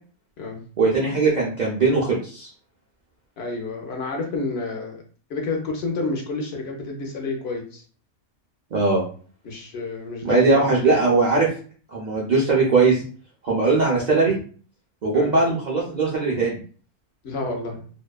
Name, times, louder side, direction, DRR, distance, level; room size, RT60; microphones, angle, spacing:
voice 1, 0.8-2.5 8.7-9.0 10.2-11.5 11.9-13.0 13.4-14.4 15.0-16.6, right 3 dB, 75° right, -5 dB, 0.4 m, -20 dB
voice 2, 3.4-5.0 5.3-7.8 9.4-10.5 15.1-15.3 17.2-17.8, left 3 dB, 60° left, 2 dB, 0.8 m, -29 dB
2.7 x 2.1 x 2.2 m, 0.41 s
omnidirectional pair, 1.5 m